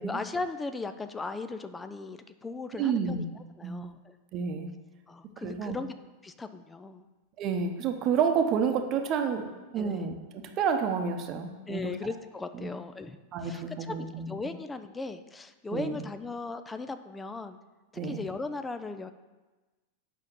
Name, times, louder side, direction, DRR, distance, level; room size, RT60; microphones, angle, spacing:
voice 1, 0.0-4.1 5.1-5.9 6.2-7.0 9.8-10.1 11.7-17.6 18.0-19.1, left 3 dB, 10° left, 9 dB, 0.5 m, -38 dB
voice 2, 2.8-3.2 3.6-3.9 4.3-4.7 5.4-5.8 7.4-11.9 12.5-12.7 13.3-14.3 15.7-16.0 18.0-18.2, right 6 dB, 35° right, 5 dB, 1.0 m, -30 dB
8.2 x 5.7 x 6.7 m, 1.2 s
figure-of-eight pair, 90°, 0 cm